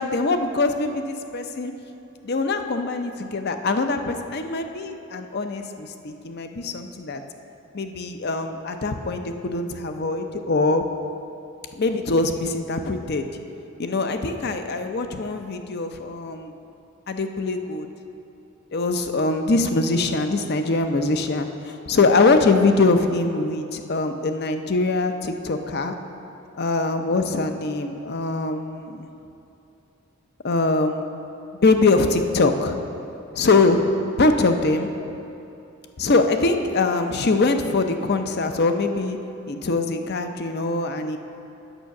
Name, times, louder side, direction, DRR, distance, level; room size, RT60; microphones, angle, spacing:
voice 1, 0.0-1.7 2.2-7.2 7.7-10.9 11.8-13.3 13.8-16.5 17.1-17.9 18.7-25.9 26.6-29.1 30.4-31.2 31.6-32.8 33.3-34.9 36.0-39.2 39.5-41.2, left 3 dB, 50° left, 7 dB, 0.6 m, -23 dB
9.0 x 5.6 x 7.0 m, 2.8 s
head